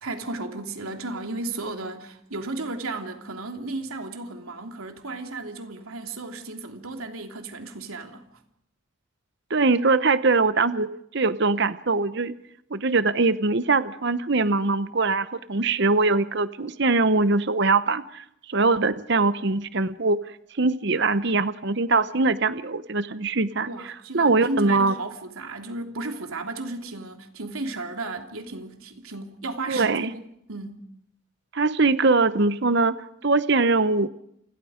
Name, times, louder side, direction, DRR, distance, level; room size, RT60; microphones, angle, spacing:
voice 1, 0.0-8.3 23.6-30.8, right 2 dB, 85° right, 3.3 m, -34 dB
voice 2, 9.5-12.3 12.7-20.2 20.6-23.7 24.1-24.9 29.7-30.1 31.5-32.9 33.2-34.1, right 3 dB, 55° right, 0.9 m, -22 dB
29.0 x 27.0 x 5.1 m
head